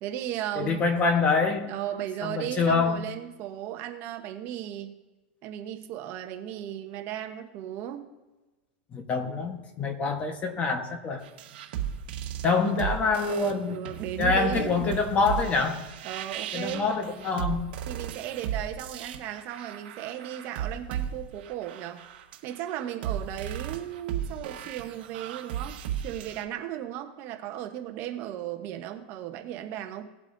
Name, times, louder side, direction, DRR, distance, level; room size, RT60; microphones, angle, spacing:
voice 1, 0.0-0.8 1.7-4.9 5.4-8.1 9.2-9.3 12.6-12.8 13.5-15.0 16.0-16.9 17.9-22.1 22.4-30.0, right 11 dB, 40° right, 5 dB, 1.0 m, -36 dB
voice 2, 0.6-1.7 2.2-3.0 8.9-11.2 12.4-13.8 14.2-15.8 16.5-17.7, left 4 dB, 25° left, 6 dB, 1.2 m, -26 dB
sound 1, 11.2-26.4, right 9 dB, 65° right, 1.3 m, -35 dB
19.0 x 8.1 x 2.7 m, 1.1 s
supercardioid pair, 150°, 6 cm